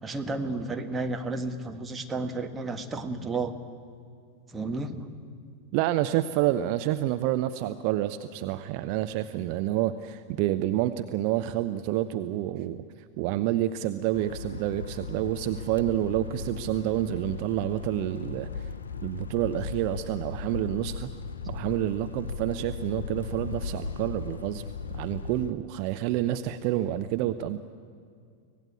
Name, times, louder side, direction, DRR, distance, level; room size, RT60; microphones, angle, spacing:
voice 1, 0.0-3.5 4.5-5.1, right 3 dB, 15° right, 5 dB, 1.6 m, -32 dB
voice 2, 5.7-12.8 13.2-18.7 19.0-21.1 21.5-24.6 24.9-27.6, right 13 dB, 45° right, 10 dB, 0.7 m, -28 dB
sound 1, 14.1-25.5, left 5 dB, 70° left, 0.8 m, -37 dB
24.5 x 18.0 x 8.6 m, 2.3 s
figure-of-eight pair, 90°, 0 cm